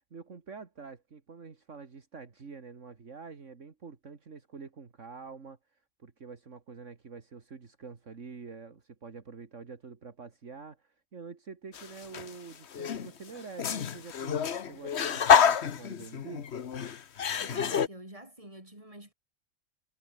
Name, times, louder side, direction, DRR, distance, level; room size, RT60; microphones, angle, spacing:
voice 1, 0.1-5.6 6.0-16.5, right 5 dB, 65° right, 2.3 m, -46 dB
sound 1, 11.7-12.3 12.7-17.9, left 7 dB, 55° left, 1.3 m, -27 dB
voice 2, 17.4-19.1, right 1 dB, 25° right, 5.7 m, -47 dB
omnidirectional pair, 1.4 m